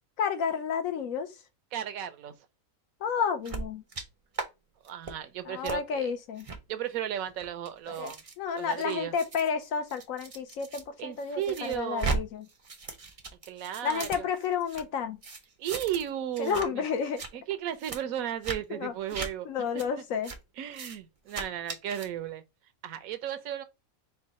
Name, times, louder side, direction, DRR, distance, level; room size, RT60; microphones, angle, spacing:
voice 1, 0.2-1.3 3.0-3.8 5.5-6.5 7.9-12.5 13.8-15.2 16.4-17.2 18.7-18.9 19.4-20.3, left 6 dB, 70° left, 1.1 m, -31 dB
voice 2, 1.7-2.3 4.8-6.1 6.7-8.2 8.5-9.1 11.0-12.1 13.5-14.2 15.6-16.8 17.3-19.7 20.6-22.4 22.8-23.6, right 11 dB, 75° right, 1.0 m, -35 dB
sound 1, 3.4-4.0 4.3-4.5 4.8-5.1 5.6-5.8 6.4-6.6 7.2-10.8 11.2-12.2 12.5-14.8 15.2-16.1 16.3-16.7 17.0-17.3 17.8-18.0 18.4-18.6 19.1-19.3 19.8-19.9 20.2-20.4 20.7-21.0 21.3-22.1, right 4 dB, 45° right, 0.4 m, -37 dB
4.6 x 2.2 x 4.1 m
omnidirectional pair, 1.5 m